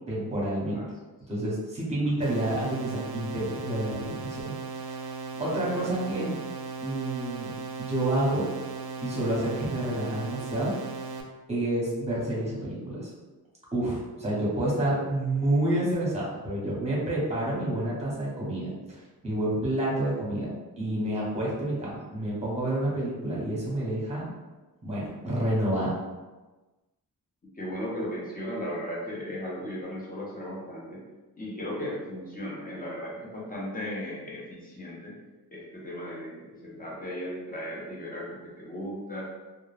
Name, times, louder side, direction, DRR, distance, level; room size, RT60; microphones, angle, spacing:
voice 1, 0.1-0.8 1.3-5.1 5.4-6.4 6.8-7.5 7.8-8.4 9.0-10.7 11.5-13.1 13.7-20.5 20.8-24.3 24.8-25.9, right 1 dB, 15° right, -6 dB, 0.9 m, -29 dB
sound 1, 2.2-11.2, right 4 dB, 65° right, 0.5 m, -37 dB
voice 2, 5.3-6.0 27.5-31.1 31.4-35.2 35.5-39.2, equal, 20° left, -5 dB, 0.6 m, -36 dB
2.3 x 2.2 x 3.2 m, 1.2 s
wide cardioid pair, 140°, 39 cm